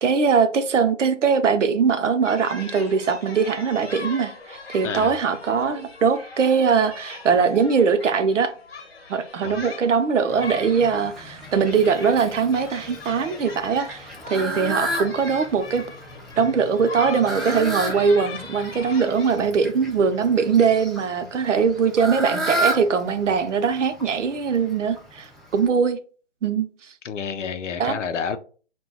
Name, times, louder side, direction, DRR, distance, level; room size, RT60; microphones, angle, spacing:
voice 1, 0.0-8.5 9.1-15.8 16.4-26.0 26.4-26.7 27.8-28.0, right 6 dB, 80° right, 0.6 m, -21 dB
sound 1, 2.2-19.4, left 3 dB, 55° left, 0.8 m, -40 dB
voice 2, 4.8-5.1 9.4-9.6 27.0-28.4, left 6 dB, 85° left, 0.5 m, -29 dB
Fowl, 10.3-25.7, right 1 dB, ahead, 0.3 m, -33 dB
2.2 x 2.2 x 3.8 m
hypercardioid pair, 180°, 36 cm